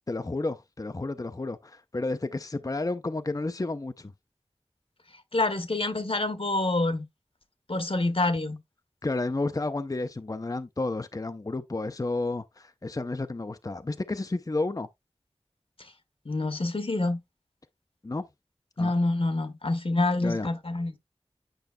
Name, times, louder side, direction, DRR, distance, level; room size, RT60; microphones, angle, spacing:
voice 1, 0.1-4.1 9.0-14.9 18.0-18.3 18.8-18.9 20.2-20.5, left 2 dB, 35° left, 0.5 m, -31 dB
voice 2, 5.3-7.1 7.7-8.6 16.2-17.2 18.8-20.9, left 2 dB, 60° left, 1.1 m, -27 dB
9.1 x 5.2 x 2.2 m
wide cardioid pair, 40°, 11 cm